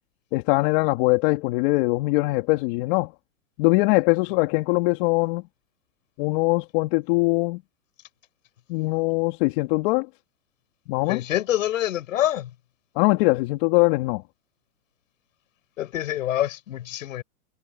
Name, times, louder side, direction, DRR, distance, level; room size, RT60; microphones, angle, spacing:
voice 1, 0.3-3.1 3.6-5.4 6.2-7.6 8.7-10.1 10.9-11.2 12.9-14.2, left 24 dB, 35° left, 3.2 m, -22 dB
voice 2, 11.1-12.5 15.8-17.2, left 13 dB, 60° left, 7.6 m, -26 dB
hypercardioid pair, 145°, 44 cm